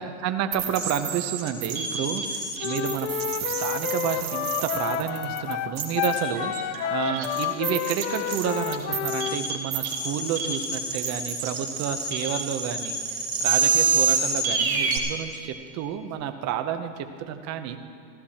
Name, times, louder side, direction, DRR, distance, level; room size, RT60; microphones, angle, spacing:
voice 1, 0.0-17.8, right 9 dB, 40° right, 8 dB, 0.9 m, -30 dB
sound 1, 0.5-15.0, right 5 dB, 80° right, 2.3 m, -28 dB
Wind instrument woodwind instrument, 2.6-9.4, left 10 dB, 50° left, 0.7 m, -30 dB
15.5 x 13.0 x 4.3 m, 2.6 s
supercardioid pair, 140°, 43 cm